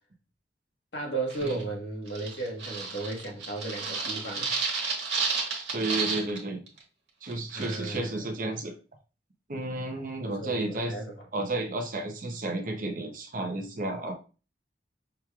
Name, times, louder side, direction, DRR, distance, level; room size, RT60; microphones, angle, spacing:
voice 1, 0.9-4.5 7.5-8.3 10.2-11.1, right 2 dB, 70° left, 1.4 m, -35 dB
sound 1, 1.3-1.6 2.1-6.4 6.7-6.8 7.3-8.0, right 4 dB, 75° right, 1.4 m, -32 dB
voice 2, 5.7-6.6 7.2-8.7 9.5-10.9 11.3-14.1, right 2 dB, 45° right, 0.7 m, -32 dB
5.8 x 3.2 x 2.3 m
head